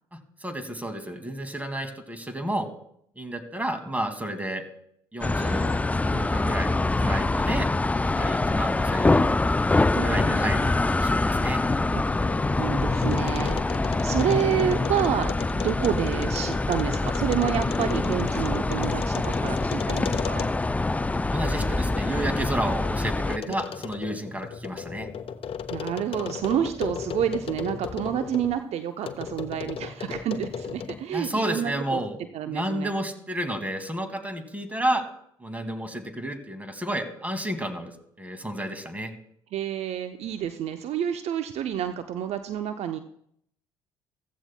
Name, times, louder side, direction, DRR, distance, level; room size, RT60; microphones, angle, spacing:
voice 1, 0.4-2.7 3.2-4.6 5.1-5.7 6.0-7.7 8.1-9.3 10.0-10.6 10.9-11.6 21.1-25.1 31.1-32.2 32.5-35.0 35.4-39.1, right 1 dB, 10° right, 7 dB, 2.2 m, -31 dB
sound 1, 5.2-23.4, left 2 dB, 10° left, 0.4 m, -25 dB
voice 2, 9.9-10.7 11.9-12.1 12.6-20.5 23.5-23.6 25.7-32.0 32.3-32.9 39.5-43.0, right 10 dB, 55° right, 9 dB, 0.7 m, -29 dB
sound 2, 11.8-20.8 21.3-28.6 29.0-31.1, left 7 dB, 45° left, 0.9 m, -36 dB
15.0 x 15.0 x 2.2 m, 0.70 s
hypercardioid pair, 55°, 13 cm